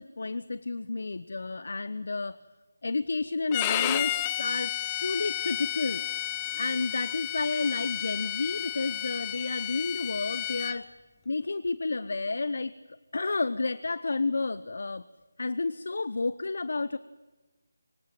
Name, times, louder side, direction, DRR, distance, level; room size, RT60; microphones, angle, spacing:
voice 1, 0.0-2.4 2.8-4.7 5.0-6.0 6.6-10.9 11.3-12.7 13.1-15.0 15.4-17.0, left 3 dB, 60° left, 16 dB, 0.9 m, -31 dB
Bowed string instrument, 3.5-10.8, left 13 dB, 20° left, 1.0 m, -32 dB
25.5 x 24.5 x 9.1 m, 1.2 s
figure-of-eight pair, 160°, 0 cm